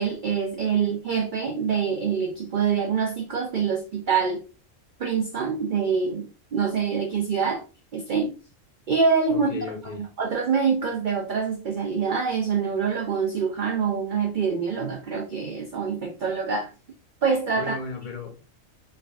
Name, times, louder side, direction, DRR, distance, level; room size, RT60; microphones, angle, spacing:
voice 1, 0.0-4.4 5.0-6.3 6.5-7.6 7.9-8.3 8.9-9.5 10.2-16.7 17.2-17.8, right 6 dB, 80° right, 0.4 m, -25 dB
voice 2, 9.3-10.0 17.5-18.5, left 4 dB, 50° left, 0.5 m, -35 dB
3.4 x 2.3 x 2.3 m
omnidirectional pair, 1.4 m